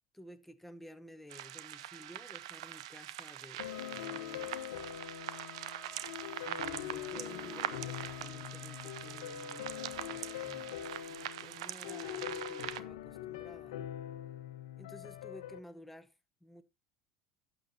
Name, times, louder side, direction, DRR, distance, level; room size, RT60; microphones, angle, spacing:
voice 1, 0.1-4.6 6.4-13.8 14.8-16.1 16.4-16.6, left 1 dB, 5° left, 1.1 m, -53 dB
sound 1, 1.3-12.8, right 13 dB, 80° right, 0.7 m, -43 dB
sound 2, 3.6-15.6, left 11 dB, 85° left, 1.0 m, -43 dB
Trumpet, 3.7-11.0, left 7 dB, 40° left, 1.6 m, -55 dB
12.0 x 8.7 x 2.8 m
hypercardioid pair, 85°, 3 cm